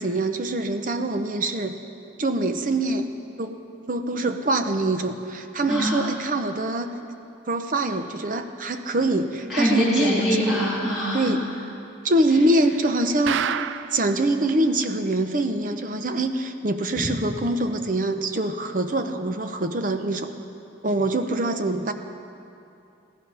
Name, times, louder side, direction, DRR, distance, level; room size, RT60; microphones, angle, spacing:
voice 1, 0.0-1.8 2.2-3.1 3.4-3.5 3.9-6.9 7.5-10.6 11.1-11.4 12.0-13.4 13.9-20.3 20.8-21.9, right 2 dB, 40° right, 7 dB, 0.7 m, -24 dB
voice 2, 5.7-6.0 9.5-11.2 17.0-17.1, equal, ahead, -10 dB, 2.7 m, -23 dB
sound 1, 13.3-14.1 14.5-14.6 14.8-14.9 15.4-15.5, right 8 dB, 70° right, 0.3 m, -27 dB
15.0 x 12.5 x 5.6 m, 2.6 s
head